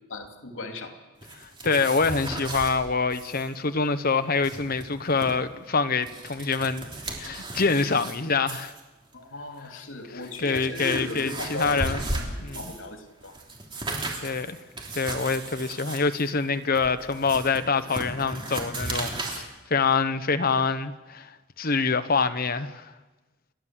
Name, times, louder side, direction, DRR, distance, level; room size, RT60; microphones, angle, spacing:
voice 1, 0.1-0.9 9.1-13.3, left 1 dB, 90° left, 2.7 m, -37 dB
sound 1, 1.2-2.7 3.1-3.5 3.7-3.8 4.2-5.3 5.8-8.2 8.5-8.8 9.6-9.7 10.2-12.9 13.2-19.4, right 2 dB, 25° right, 3.3 m, -35 dB
voice 2, 1.4-6.9 7.2-8.7 10.4-12.0 12.4-12.6 14.2-14.6 14.9-19.4 19.7-21.3 21.6-22.9, left 4 dB, 50° left, 1.1 m, -25 dB
29.5 x 11.5 x 7.6 m
head